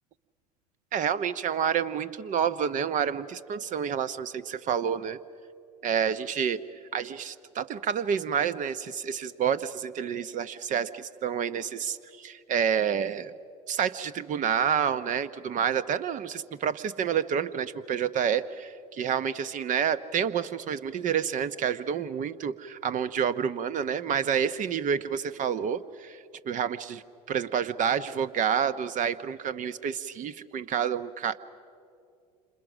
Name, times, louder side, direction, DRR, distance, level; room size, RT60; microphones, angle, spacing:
voice 1, 0.9-5.2 5.8-6.6 6.9-13.3 13.7-27.0 27.3-31.4, right 8 dB, 40° right, 14 dB, 0.9 m, -29 dB
28.5 x 26.5 x 6.3 m, 2.4 s
hypercardioid pair, 75°, 20 cm